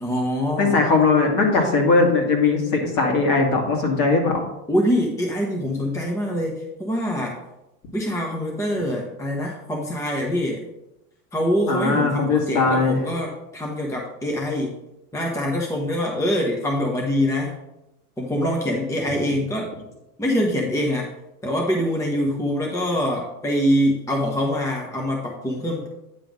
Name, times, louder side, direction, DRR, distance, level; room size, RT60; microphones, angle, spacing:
voice 1, 0.0-0.8 4.7-7.4 7.9-10.6 11.3-14.8 15.1-17.5 18.2-19.8 20.2-21.1 21.4-25.9, equal, 5° left, -1 dB, 1.0 m, -24 dB
voice 2, 0.6-4.4 11.7-13.0, left 3 dB, 45° left, 1 dB, 2.3 m, -19 dB
9.4 x 3.4 x 6.2 m, 0.93 s
hypercardioid pair, 100°, 48 cm